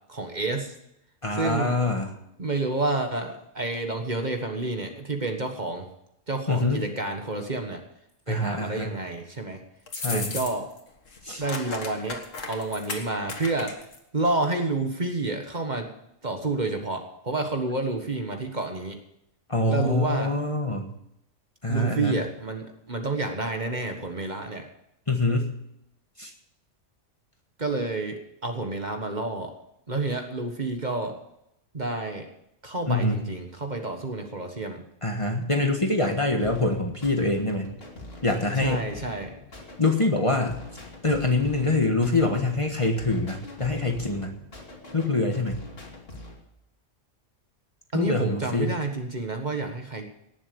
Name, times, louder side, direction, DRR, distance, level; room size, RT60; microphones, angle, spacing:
voice 1, 0.1-0.7 1.3-1.8 2.4-5.9 6.3-7.8 8.3-9.6 10.1-10.7 11.4-13.9 14.1-15.9 16.2-19.0 19.7-20.3 21.7-24.7 27.6-29.5 29.9-31.2 31.7-32.3 32.6-34.8 38.6-39.3 47.9-50.1, right 2 dB, 35° right, 4 dB, 1.5 m, -29 dB
voice 2, 1.2-2.1 6.5-6.8 8.3-8.9 9.9-10.4 11.2-11.4 19.5-20.9 21.6-22.1 25.1-25.5 26.2-26.3 32.9-33.2 35.0-37.7 38.2-38.8 39.8-40.6 41.0-44.3 44.9-45.6 47.9-48.7, left 2 dB, 25° left, 3 dB, 1.4 m, -25 dB
sound 1, 9.9-10.8 11.1-14.0, left 3 dB, 90° left, 2.1 m, -35 dB
sound 2, 36.4-46.4, left 2 dB, 50° left, 2.8 m, -44 dB
18.5 x 7.2 x 6.9 m, 0.80 s
omnidirectional pair, 1.3 m